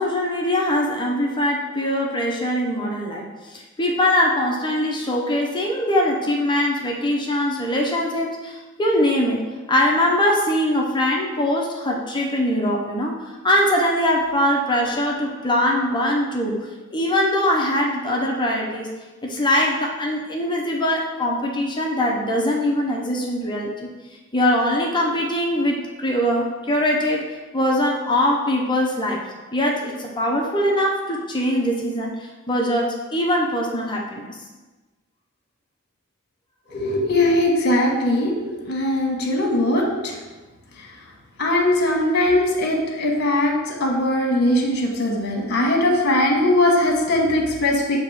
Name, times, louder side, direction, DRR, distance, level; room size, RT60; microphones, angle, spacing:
voice 1, 0.0-9.4 9.7-13.2 13.4-16.6 16.9-18.9 19.2-23.9 24.3-27.3 27.5-29.2 29.5-34.4, left 1 dB, 20° left, -1 dB, 0.7 m, -22 dB
voice 2, 36.7-38.4 38.7-40.1 41.4-48.0, left 1 dB, 50° left, 0 dB, 1.2 m, -20 dB
7.7 x 2.9 x 4.8 m, 1.2 s
head